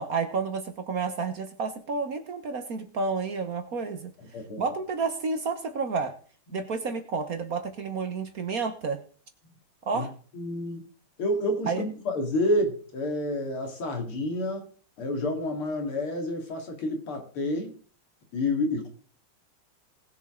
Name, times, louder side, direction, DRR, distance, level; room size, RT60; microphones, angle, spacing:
voice 1, 0.0-4.1 4.6-6.1 6.5-9.0 9.9-10.1 11.7-11.8, right 4 dB, 50° right, 8 dB, 1.2 m, -30 dB
voice 2, 10.3-10.8 11.2-14.7 15.0-17.7 18.3-18.9, left 1 dB, 85° left, 3 dB, 3.1 m, -29 dB
19.5 x 7.2 x 3.7 m, 0.42 s
omnidirectional pair, 2.3 m